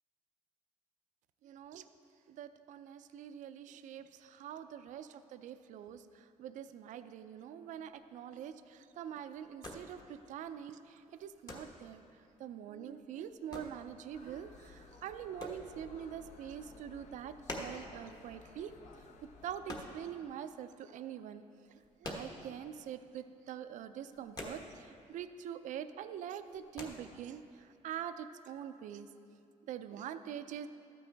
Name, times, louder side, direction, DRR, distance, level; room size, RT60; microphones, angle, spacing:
voice 1, 1.4-1.8 2.3-12.0 12.4-18.7 19.4-21.4 22.0-27.4 27.8-29.1 29.7-30.7, right 9 dB, 65° right, 11 dB, 0.4 m, -44 dB
sound 1, 7.7-20.7 21.0-22.9 23.2-23.4 23.6-25.2 25.5-26.0 26.3-26.9, left 1 dB, 30° left, 1.3 m, -47 dB
sound 2, 14.1-19.9, left 4 dB, 60° left, 0.9 m, -57 dB
13.5 x 9.2 x 3.4 m, 2.5 s
cardioid pair, 130°, 14 cm